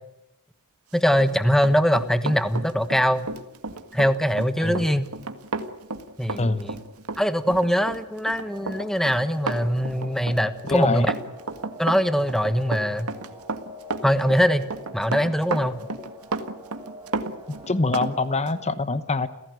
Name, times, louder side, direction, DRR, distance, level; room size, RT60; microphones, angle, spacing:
voice 1, 0.9-3.3 3.9-5.1 6.2-6.7 7.2-11.1 11.8-13.1 14.0-14.6 14.9-15.8, equal, ahead, 11 dB, 1.2 m, -22 dB
Run, 1.1-18.1 18.5-18.6, right 3 dB, 85° right, 1.8 m, -32 dB
sound 1, 8.4-18.5, left 1 dB, 15° right, 5.2 m, -45 dB
voice 2, 10.7-11.1 17.7-19.3, left 3 dB, 30° left, 12 dB, 1.1 m, -24 dB
30.0 x 16.5 x 9.5 m, 0.87 s
head